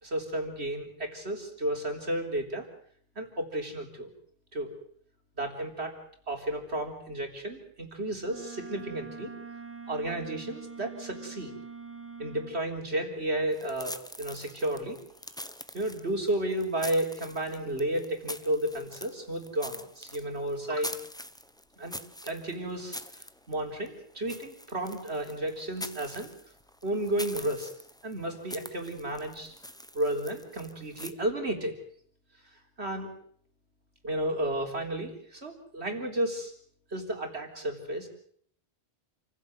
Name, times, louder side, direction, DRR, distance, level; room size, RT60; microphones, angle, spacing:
voice 1, 0.0-2.6 3.2-4.1 4.5-4.8 5.4-6.0 6.3-9.3 9.9-11.5 12.2-15.0 15.7-20.9 21.8-22.0 22.2-23.0 23.5-26.3 26.8-27.7 28.0-29.5 29.9-31.7 32.8-33.1 34.0-36.5 36.9-38.1, right 1 dB, 80° right, 3 dB, 4.1 m, -32 dB
Wind instrument woodwind instrument, 8.2-12.6, right 5 dB, 10° right, 1.4 m, -44 dB
sound 1, 13.5-31.1, left 1 dB, 5° left, 0.9 m, -44 dB
28.5 x 16.0 x 7.8 m, 0.62 s
omnidirectional pair, 1.1 m